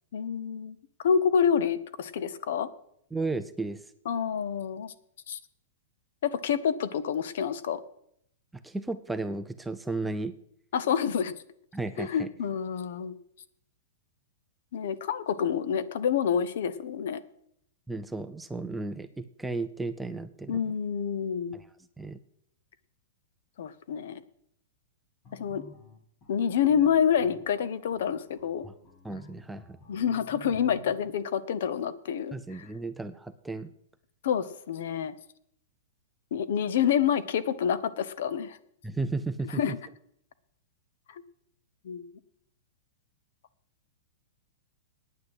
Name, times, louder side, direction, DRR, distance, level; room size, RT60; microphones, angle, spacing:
voice 1, 0.1-0.8 1.0-2.7 4.1-4.9 5.3-5.4 6.2-7.8 10.7-11.3 12.0-13.1 14.7-17.2 20.5-21.6 23.6-24.2 25.4-25.6 26.3-28.6 29.9-32.7 34.2-35.2 36.3-38.6 39.6-39.8 41.8-42.0, left 8 dB, 60° left, 15 dB, 0.8 m, -28 dB
voice 2, 3.1-3.8 8.5-10.4 11.7-12.3 17.9-20.7 21.5-21.7 22.0-22.2 28.6-28.7 29.0-29.8 32.3-33.7 38.8-39.6, right 3 dB, 5° right, 10 dB, 0.4 m, -34 dB
sound 1, 25.2-31.0, left 3 dB, 20° left, 1.5 m, -51 dB
9.3 x 8.8 x 8.0 m, 0.71 s
supercardioid pair, 170°, 0 cm